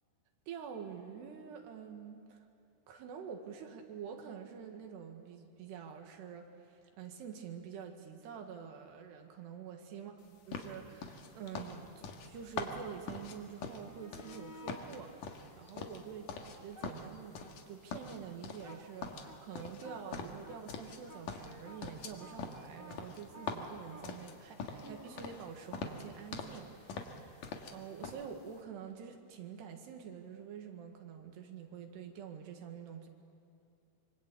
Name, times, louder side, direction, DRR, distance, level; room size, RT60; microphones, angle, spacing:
voice 1, 0.5-2.4 2.9-16.3 16.6-17.4 17.7-33.1, right 7 dB, 85° right, 4 dB, 4.1 m, -47 dB
sound 1, 10.5-14.4 14.7-16.6 16.8-17.6 17.9-18.8 19.0-21.0 21.3-24.9 25.2-25.5 25.7-26.6 26.9-27.8 28.0-28.2, left 5 dB, 60° left, 2.9 m, -43 dB
sound 2, 13.6-14.9 15.5-17.6 17.9-26.1 28.8-29.0, equal, 10° right, 1.4 m, -54 dB
26.0 x 24.5 x 8.5 m, 2.7 s
omnidirectional pair, 4.7 m